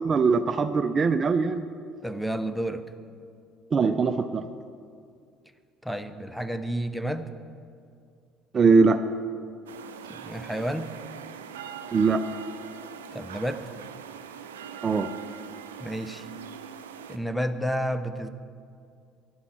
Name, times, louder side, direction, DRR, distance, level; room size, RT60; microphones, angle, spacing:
voice 1, 0.0-1.7 3.7-4.5 8.5-9.0 11.9-12.2 14.8-15.1, right 4 dB, 40° right, 11 dB, 0.5 m, -21 dB
voice 2, 2.0-2.8 5.8-7.3 10.1-10.9 13.1-13.6 15.8-16.3 17.1-18.3, equal, ahead, 9 dB, 0.8 m, -30 dB
sound 1, 9.7-17.2, right 7 dB, 85° right, 0.6 m, -42 dB
12.5 x 11.0 x 4.4 m, 2.3 s
hypercardioid pair, 60°, 0 cm